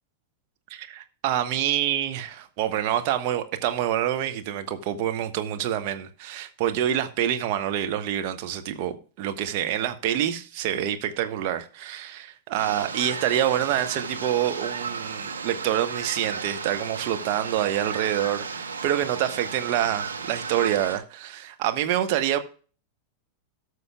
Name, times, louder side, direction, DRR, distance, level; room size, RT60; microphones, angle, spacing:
voice 1, 0.7-22.4, right 11 dB, 45° right, 1.2 m, -27 dB
sound 1, 12.6-21.0, right 5 dB, 75° right, 1.4 m, -34 dB
18.0 x 6.4 x 2.3 m
figure-of-eight pair, 90°, 0 cm